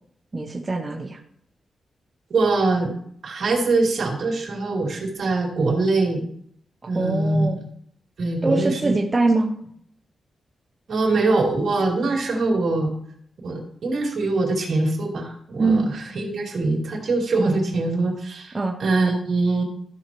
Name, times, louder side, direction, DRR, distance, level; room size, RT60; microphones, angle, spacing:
voice 1, 0.3-1.2 6.8-7.6 8.4-9.5 15.6-15.9 18.5-18.8, right 3 dB, 25° right, 0 dB, 0.8 m, -23 dB
voice 2, 2.3-3.0 3.2-6.2 6.9-7.6 8.2-9.0 10.9-12.9 13.4-18.5 18.8-19.6, right 3 dB, 60° right, -2 dB, 2.8 m, -23 dB
14.0 x 6.4 x 3.1 m, 0.68 s
wide cardioid pair, 120°, 0 cm